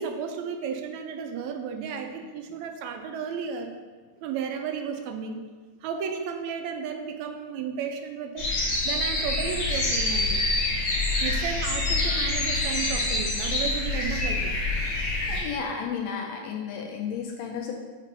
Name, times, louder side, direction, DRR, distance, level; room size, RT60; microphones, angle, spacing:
voice 1, 0.0-3.7 4.2-5.5 5.8-8.5 8.8-10.5 11.2-14.7, right 6 dB, 80° right, 5 dB, 1.8 m, -33 dB
sound 1, 8.4-15.4, left 2 dB, 55° left, 1.5 m, -26 dB
voice 2, 15.3-17.7, left 6 dB, 80° left, 2 dB, 1.7 m, -32 dB
5.2 x 4.0 x 5.3 m, 1.4 s
omnidirectional pair, 3.4 m